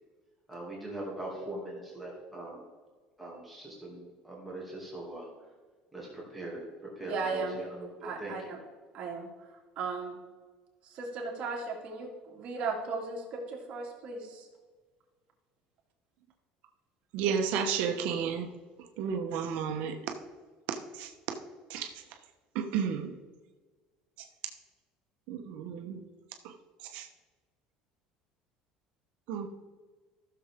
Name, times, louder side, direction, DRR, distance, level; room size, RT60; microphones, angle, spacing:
voice 1, 0.5-2.6 3.2-5.3 5.9-6.7 7.0-8.5, right 1 dB, 5° right, -5 dB, 2.4 m, -41 dB
voice 2, 7.1-7.6 8.0-8.6 8.9-9.3 9.8-10.2 10.9-14.5, right 4 dB, 45° right, -1 dB, 2.5 m, -36 dB
voice 3, 17.1-18.5 19.0-20.0 21.0-21.1 21.7-21.9 22.5-23.1 25.3-26.0 26.9-27.1 29.3-29.5, right 7 dB, 70° right, 4 dB, 1.0 m, -32 dB
14.5 x 6.8 x 3.6 m, 1.4 s
cardioid pair, 155°, 3 cm